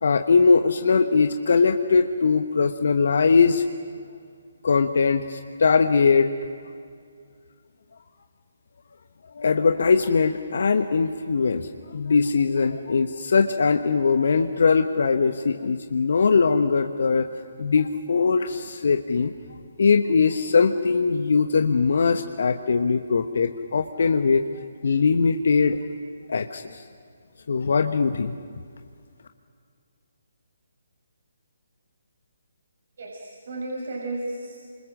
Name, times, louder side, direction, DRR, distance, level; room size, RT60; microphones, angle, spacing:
voice 1, 0.0-3.6 4.6-6.3 9.4-17.3 17.6-19.3 19.8-25.8 26.3-26.8 27.5-28.3, left 5 dB, 60° left, 7 dB, 1.1 m, -21 dB
voice 2, 33.0-34.6, right 2 dB, 55° right, -2 dB, 6.2 m, -33 dB
29.5 x 26.5 x 6.4 m, 2.2 s
figure-of-eight pair, 140°, 0 cm